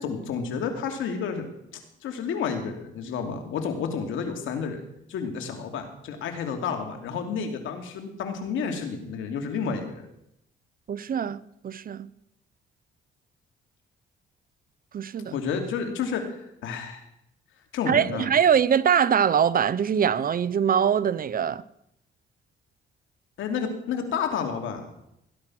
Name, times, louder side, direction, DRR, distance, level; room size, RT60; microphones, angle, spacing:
voice 1, 0.0-4.8 5.1-10.0 15.3-17.1 17.7-18.3 23.4-24.9, left 6 dB, 80° left, 2.8 m, -30 dB
voice 2, 10.9-12.1 14.9-15.3 17.9-21.6, right 8 dB, 45° right, 0.8 m, -23 dB
18.0 x 11.5 x 6.2 m
cardioid pair, 90°, 20 cm